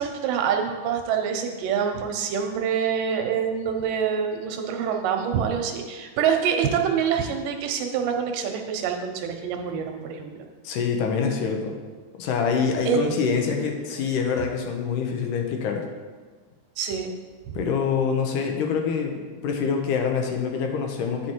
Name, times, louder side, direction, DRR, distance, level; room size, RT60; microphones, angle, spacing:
voice 1, 0.0-10.5 12.9-13.4 16.8-17.1 17.5-17.6, right 7 dB, 90° right, 4 dB, 2.5 m, -26 dB
voice 2, 10.6-11.8 12.2-15.9 17.5-21.3, left 6 dB, 80° left, 3 dB, 2.4 m, -25 dB
9.2 x 5.7 x 4.5 m, 1.5 s
omnidirectional pair, 3.7 m